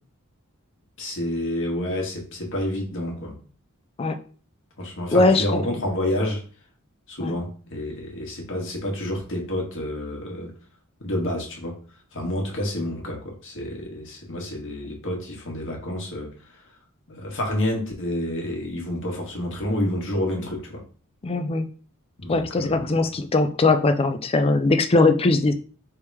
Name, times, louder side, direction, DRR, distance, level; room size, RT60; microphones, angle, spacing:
voice 1, 1.0-3.3 4.8-6.4 7.1-10.5 11.0-11.8 12.1-16.3 17.1-20.8 22.2-23.0, left 1 dB, 60° left, 0 dB, 1.4 m, -29 dB
voice 2, 5.1-5.6 7.2-7.3 21.2-21.7 22.3-25.5, left 3 dB, 25° left, 9 dB, 0.4 m, -20 dB
3.5 x 2.9 x 4.6 m, 0.40 s
head